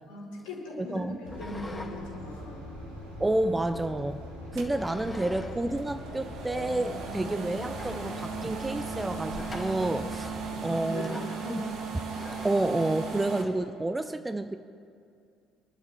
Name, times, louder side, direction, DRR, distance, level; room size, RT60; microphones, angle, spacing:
voice 1, 0.1-2.7 7.0-7.3 10.5-11.7, left 2 dB, 65° left, -4 dB, 4.6 m, -40 dB
voice 2, 0.8-1.2 3.2-4.2 4.5-11.2 11.5-11.6 12.4-14.6, right 2 dB, 15° right, 10 dB, 0.7 m, -29 dB
sound 1, 1.2-10.5, left 1 dB, 85° right, 2.5 m, -42 dB
sound 2, 1.3-1.9 2.3-3.7 4.7-5.5 5.8-5.9 6.6-6.7 7.1-7.2 7.6-8.3 9.4-10.0 11.0-11.4 12.1-12.7, left 2 dB, 20° left, 2.5 m, -45 dB
sound 3, 4.6-13.4, right 5 dB, 55° right, 1.8 m, -37 dB
28.0 x 12.0 x 3.5 m, 2.4 s
figure-of-eight pair, 55°, 0 cm